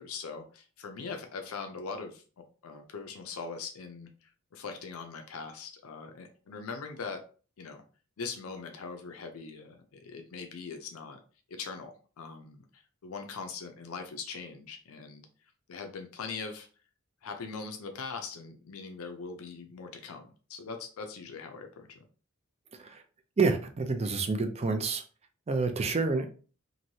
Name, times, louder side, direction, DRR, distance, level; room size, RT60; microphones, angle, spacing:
voice 1, 0.0-2.2 2.6-7.2 7.6-7.8 8.2-11.2 11.5-15.3 15.7-16.7 17.2-22.0, left 4 dB, 85° left, 0.5 m, -41 dB
voice 2, 23.4-25.0 25.5-26.3, right 4 dB, 30° right, 0.4 m, -28 dB
3.1 x 2.6 x 2.7 m
head